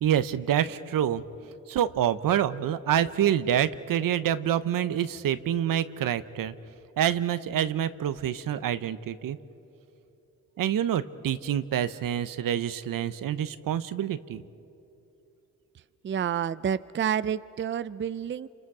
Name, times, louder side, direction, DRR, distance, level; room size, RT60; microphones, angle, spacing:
voice 1, 0.0-1.2 1.7-6.5 7.0-9.4 10.6-14.4, right 10 dB, 75° right, 13 dB, 0.8 m, -27 dB
voice 2, 16.0-18.5, right 8 dB, 35° right, 15 dB, 0.5 m, -29 dB
29.0 x 26.5 x 4.8 m, 2.9 s
cardioid pair, 65°, 34 cm